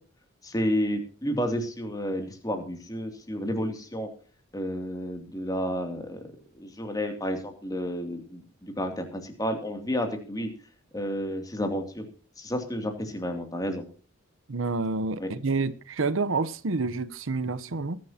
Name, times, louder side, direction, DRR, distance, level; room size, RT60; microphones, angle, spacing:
voice 1, 0.4-4.1 4.5-6.2 6.5-10.5 10.9-12.1 12.4-13.8 15.2-15.3, equal, 20° left, 2.6 m, -31 dB
voice 2, 14.5-18.0, right 3 dB, 75° right, 0.8 m, -28 dB
20.5 x 10.5 x 2.8 m
head